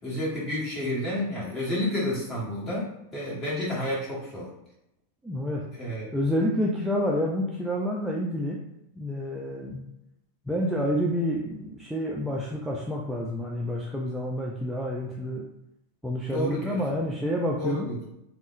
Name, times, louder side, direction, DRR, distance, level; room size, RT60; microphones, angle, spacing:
voice 1, 0.0-4.5 5.8-6.1 16.3-16.8 17.6-18.0, left 1 dB, 25° left, -6 dB, 1.4 m, -30 dB
voice 2, 5.2-5.6 6.1-8.6 9.0-9.8 10.5-15.4 16.0-17.9, equal, ahead, -4 dB, 0.4 m, -28 dB
3.5 x 2.1 x 2.5 m, 0.84 s
figure-of-eight pair, 90°, 0 cm